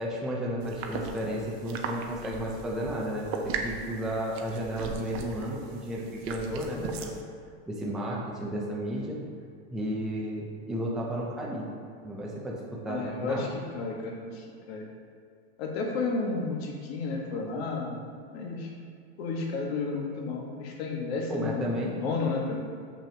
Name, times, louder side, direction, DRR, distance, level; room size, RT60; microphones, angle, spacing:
voice 1, 0.0-7.1 7.7-9.2 9.7-11.6 12.0-12.6 12.8-13.6 21.3-21.9, equal, ahead, -4 dB, 0.4 m, -33 dB
sound 1, 0.6-7.2, right 5 dB, 75° right, 0.8 m, -38 dB
voice 2, 12.9-13.5 13.7-14.8 15.6-18.0 18.3-18.7 19.2-22.6, left 3 dB, 75° left, 0 dB, 1.3 m, -32 dB
6.4 x 6.1 x 2.8 m, 2.3 s
supercardioid pair, 160°, 32 cm